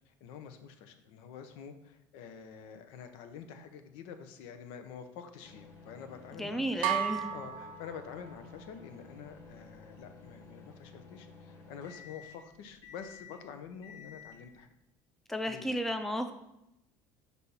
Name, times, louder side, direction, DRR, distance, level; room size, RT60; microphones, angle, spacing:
voice 1, 0.1-14.7 15.5-15.7, left 7 dB, 75° left, 8 dB, 0.7 m, -47 dB
sound 1, 5.4-14.6, left 4 dB, 55° left, 2.2 m, -53 dB
voice 2, 6.3-7.3 15.3-16.3, equal, 5° left, 7 dB, 0.4 m, -33 dB
sound 2, 6.8-8.6, right 10 dB, 65° right, 0.7 m, -34 dB
6.2 x 2.7 x 5.5 m, 0.85 s
cardioid pair, 125°, 9 cm